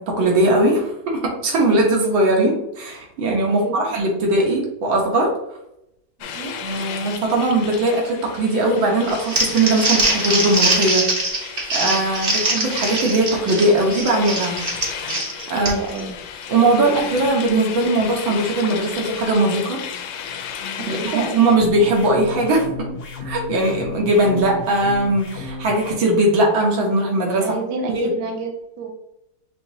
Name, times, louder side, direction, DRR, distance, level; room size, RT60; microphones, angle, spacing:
voice 1, 0.0-5.3 6.6-11.1 11.7-14.6 15.5-15.7 16.5-19.8 20.9-22.9 23.2-27.6 27.9-28.1, right 2 dB, 85° right, -1 dB, 1.8 m, -19 dB
voice 2, 3.5-3.9 6.2-6.6 15.6-16.1 20.8-21.4 27.3-28.9, right 4 dB, 65° right, 2 dB, 1.2 m, -30 dB
sound 1, 6.2-21.6, left 8 dB, 80° left, 1.3 m, -33 dB
Crumpling crinkling, 9.1-16.0, right 2 dB, 40° right, 0.7 m, -22 dB
sound 2, 21.6-26.0, left 3 dB, 65° left, 0.9 m, -33 dB
6.2 x 2.7 x 2.7 m, 0.82 s
omnidirectional pair, 2.1 m